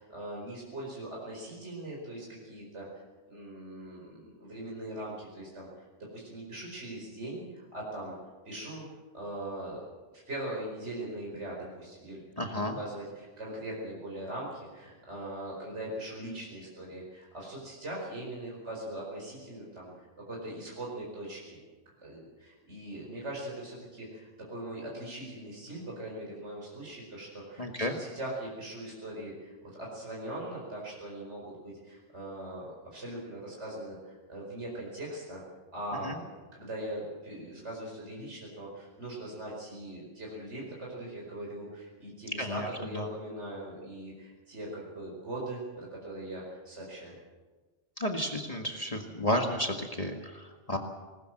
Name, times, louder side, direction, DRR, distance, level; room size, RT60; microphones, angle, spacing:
voice 1, 0.0-3.0 3.3-8.2 8.5-8.9 9.1-9.8 10.3-21.6 22.0-35.4 35.7-36.3 36.5-47.1, right 1 dB, 65° right, -3 dB, 5.2 m, -41 dB
voice 2, 12.4-12.8 27.6-28.0 36.0-36.2 42.4-42.7 42.9-43.1 48.0-50.8, left 1 dB, 30° left, 2 dB, 1.8 m, -32 dB
20.5 x 20.5 x 7.7 m, 1.3 s
omnidirectional pair, 1.3 m